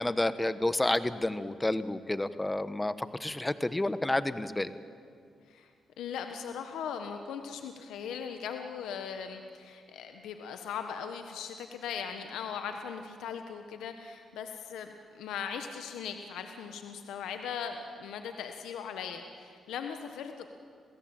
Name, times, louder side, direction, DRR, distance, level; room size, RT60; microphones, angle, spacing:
voice 1, 0.0-4.7, left 1 dB, 15° left, 13 dB, 1.2 m, -30 dB
voice 2, 6.0-20.5, left 7 dB, 90° left, 6 dB, 1.3 m, -39 dB
27.0 x 17.0 x 8.9 m, 2.3 s
cardioid pair, 70°, 0 cm